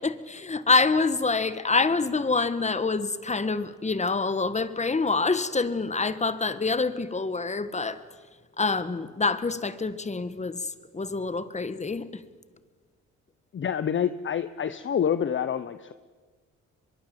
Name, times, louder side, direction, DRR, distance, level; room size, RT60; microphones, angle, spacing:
voice 1, 0.0-8.0 8.6-12.2, left 4 dB, 25° left, 13 dB, 1.7 m, -26 dB
voice 2, 13.5-15.9, left 8 dB, 40° left, 13 dB, 0.9 m, -27 dB
24.0 x 22.5 x 7.8 m, 1.5 s
cardioid pair, 90°, 30 cm